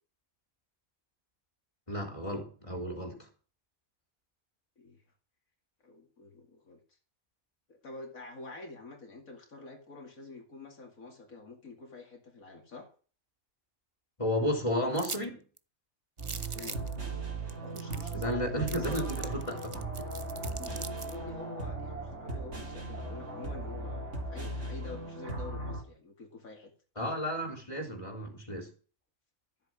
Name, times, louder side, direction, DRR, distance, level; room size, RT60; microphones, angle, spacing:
voice 1, 1.9-3.3 14.2-15.4 18.1-19.4 27.0-28.7, equal, 20° left, 2 dB, 3.7 m, -32 dB
voice 2, 5.8-6.8 7.7-12.9 16.5-16.8 17.5-19.4 20.6-26.7, left 3 dB, 75° left, 2 dB, 2.8 m, -47 dB
sound 1, 15.0-15.2 15.6-15.7 16.2-16.9 17.5-17.6 17.8-18.3 18.7-21.2, right 4 dB, 30° right, 0.6 m, -41 dB
sound 2, 16.2-25.8, right 3 dB, 55° right, 4.2 m, -37 dB
14.0 x 8.1 x 6.2 m, 0.39 s
omnidirectional pair, 1.5 m